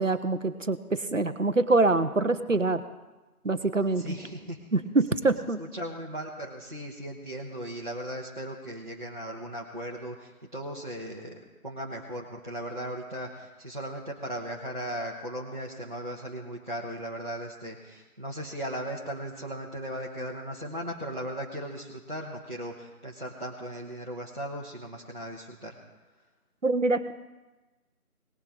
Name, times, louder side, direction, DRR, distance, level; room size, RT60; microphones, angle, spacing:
voice 1, 0.0-2.8 3.4-4.0 4.7-5.6 26.6-27.1, right 3 dB, 60° right, 11 dB, 1.0 m, -25 dB
voice 2, 3.9-4.9 5.6-25.8, equal, 35° right, -4 dB, 1.4 m, -37 dB
19.0 x 6.7 x 5.1 m, 1.1 s
figure-of-eight pair, 170°, 45 cm